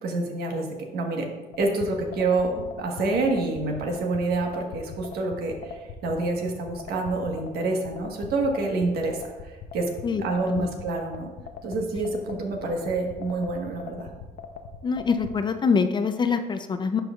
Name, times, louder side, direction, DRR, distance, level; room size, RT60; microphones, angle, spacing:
voice 1, 0.0-1.3 1.6-9.9 10.2-11.3 11.6-14.1, right 3 dB, 70° right, 2 dB, 1.3 m, -27 dB
sound 1, 1.5-15.3, left 7 dB, 60° left, 0.7 m, -40 dB
voice 2, 10.0-10.7 14.8-17.0, left 5 dB, 25° left, 8 dB, 0.4 m, -25 dB
11.5 x 4.5 x 2.3 m, 1.2 s
cardioid pair, 110°, 17 cm